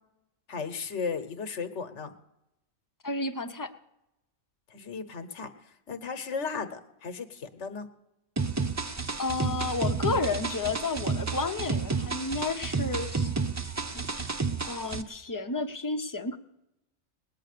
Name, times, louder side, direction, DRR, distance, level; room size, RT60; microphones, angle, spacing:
voice 1, 0.5-2.1 4.7-5.5 5.9-7.9, left 5 dB, 80° left, 9 dB, 1.4 m, -35 dB
voice 2, 3.0-3.7 9.2-13.3 13.9-16.4, left 3 dB, 20° left, 6 dB, 0.8 m, -32 dB
sound 1, 8.4-15.0, right 4 dB, 25° right, 0.4 m, -31 dB
20.0 x 9.1 x 6.7 m, 0.88 s
omnidirectional pair, 1.2 m